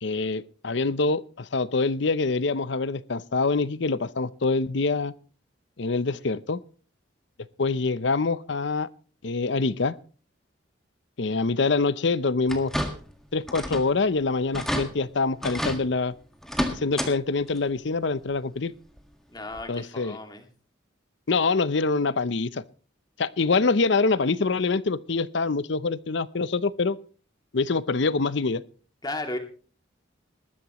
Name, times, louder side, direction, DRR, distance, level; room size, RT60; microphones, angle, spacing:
voice 1, 0.0-5.1 5.8-6.6 7.6-8.9 9.2-10.0 11.2-12.7 13.3-16.1 16.7-18.7 19.7-20.2 21.3-22.6 23.2-27.0 27.5-28.6, left 3 dB, 65° left, 17 dB, 0.7 m, -25 dB
sound 1, 12.5-13.2 13.5-13.9 14.2-14.3 14.5-14.9 15.4-15.8 16.4-17.1 17.5-17.6 19.0-19.1 19.6-19.7, equal, ahead, 1.7 m, -29 dB
voice 2, 19.3-20.5 29.0-29.4, left 2 dB, 20° left, 5 dB, 2.3 m, -34 dB
20.0 x 13.0 x 3.0 m, 0.39 s
head